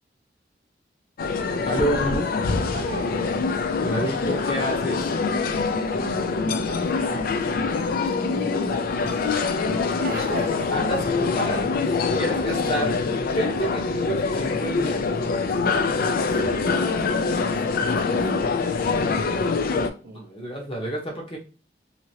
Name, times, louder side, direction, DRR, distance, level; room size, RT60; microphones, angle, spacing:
sound 1, 1.2-19.9, left 4 dB, 55° left, 0.4 m, -24 dB
voice 1, 1.6-2.3 3.8-5.1 9.0-9.2 10.2-10.4 10.7-12.9 13.3-15.1 20.0-21.4, right 1 dB, 30° left, 1.0 m, -29 dB
voice 2, 2.7-3.4 5.8-8.6 9.0-10.7 12.5-13.0 16.3-18.5 20.0-20.5, right 3 dB, 55° right, 0.4 m, -40 dB
2.8 x 2.7 x 2.8 m
head